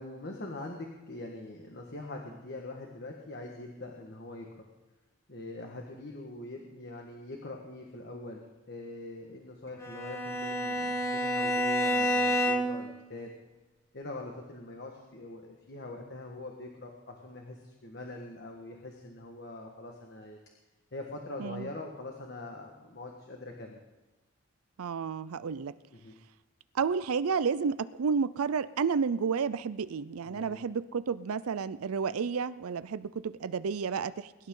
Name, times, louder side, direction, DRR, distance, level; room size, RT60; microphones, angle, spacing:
voice 1, 0.0-4.5 5.3-13.3 13.9-20.4 20.9-23.8 25.9-26.1 30.3-30.5, left 2 dB, 50° left, 1 dB, 1.5 m, -43 dB
Bowed string instrument, 9.8-12.9, equal, 15° left, 1.3 m, -29 dB
voice 2, 24.8-25.7 26.7-34.5, right 6 dB, 85° right, 15 dB, 0.5 m, -31 dB
22.5 x 11.5 x 3.8 m, 1.1 s
head